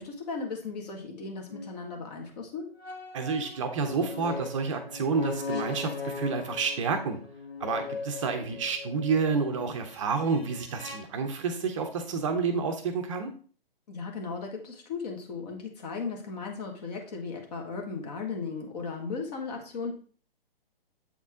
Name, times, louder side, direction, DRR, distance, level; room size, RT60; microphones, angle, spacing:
voice 1, 0.0-2.7 13.9-19.9, left 4 dB, 40° left, 2 dB, 1.7 m, -36 dB
sound 1, 1.5-1.7 2.8-11.0, left 4 dB, 85° left, 1.6 m, -39 dB
voice 2, 3.1-7.2 7.6-13.3, right 5 dB, 30° right, 6 dB, 0.7 m, -29 dB
7.7 x 4.1 x 3.6 m, 0.41 s
figure-of-eight pair, 135°, 30 cm